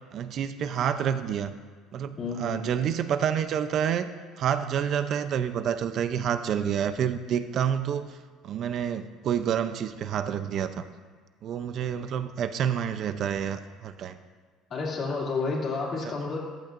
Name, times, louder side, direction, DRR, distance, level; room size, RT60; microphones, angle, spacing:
voice 1, 0.1-1.5 1.9-4.1 4.4-8.2 8.4-10.8 11.4-14.2 16.0-16.1, right 8 dB, 35° right, 11 dB, 0.6 m, -28 dB
voice 2, 2.2-2.6 14.7-16.4, left 4 dB, 30° left, -3 dB, 2.5 m, -30 dB
15.0 x 14.0 x 2.6 m, 1.5 s
cardioid pair, 175°, 0 cm